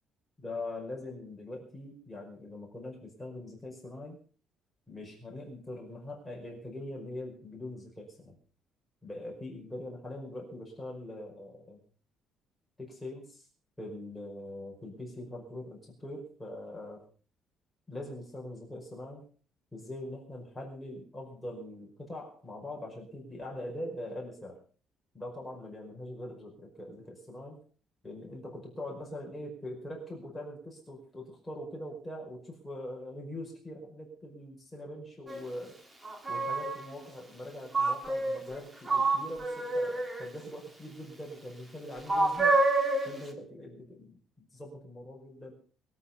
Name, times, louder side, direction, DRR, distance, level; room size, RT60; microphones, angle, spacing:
voice 1, 0.4-4.2 4.9-8.4 9.0-11.8 12.8-13.5 13.8-17.0 17.9-19.2 19.7-24.6 25.1-27.6 28.0-35.8 36.3-42.6 43.1-45.5, left 1 dB, 5° left, -3 dB, 5.3 m, -42 dB
sound 1, 35.3-35.4 36.1-36.8 37.7-38.6 38.9-40.3 42.1-43.2, right 2 dB, 15° right, 1.8 m, -28 dB
23.0 x 8.8 x 5.2 m, 0.41 s
cardioid pair, 170°, 0 cm